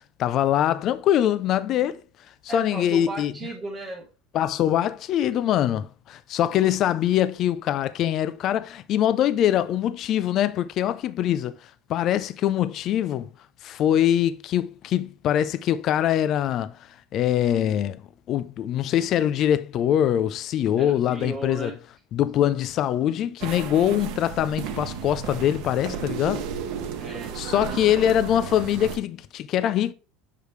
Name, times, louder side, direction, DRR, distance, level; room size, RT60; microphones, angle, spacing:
voice 1, 0.2-2.0 2.5-3.3 4.3-11.6 11.9-13.3 13.6-16.7 17.1-18.0 18.3-21.7 22.1-26.5 27.4-29.9, left 11 dB, 40° left, 0.3 m, -23 dB
voice 2, 2.5-4.1 5.3-5.4 20.8-21.8 27.0-27.4, right 2 dB, 20° right, 1.0 m, -35 dB
sound 1, 23.4-29.0, right 7 dB, 60° right, 0.9 m, -33 dB
6.5 x 5.0 x 3.1 m
cardioid pair, 145°, 0 cm